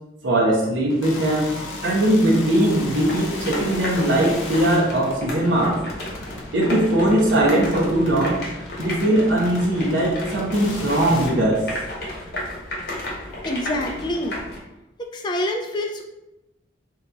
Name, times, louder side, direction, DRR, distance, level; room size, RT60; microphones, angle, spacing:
voice 1, 0.2-1.5 1.8-5.8 6.5-8.4 8.8-11.6, right 1 dB, 70° right, -3 dB, 0.7 m, -20 dB
sound 1, 0.9-11.3, left 2 dB, 90° left, 0.7 m, -36 dB
sound 2, 2.8-14.6, left 1 dB, 55° left, 0.9 m, -33 dB
voice 2, 13.4-14.4 15.0-16.0, left 1 dB, 25° left, 3 dB, 0.3 m, -27 dB
2.8 x 2.3 x 3.8 m, 0.92 s
head